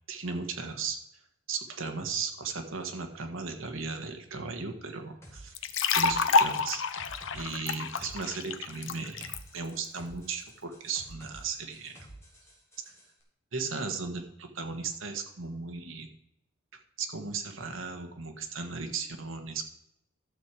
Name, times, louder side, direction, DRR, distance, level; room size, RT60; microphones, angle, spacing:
voice 1, 0.1-1.0 1.5-5.5 5.9-12.1 13.5-16.1 17.0-19.6, right 4 dB, 70° right, 5 dB, 1.5 m, -36 dB
sound 1, 5.2-13.1, right 1 dB, 15° left, 2.7 m, -51 dB
sound 2, 5.5-9.4, left 5 dB, 65° left, 0.7 m, -28 dB
12.0 x 7.5 x 4.8 m, 0.79 s
head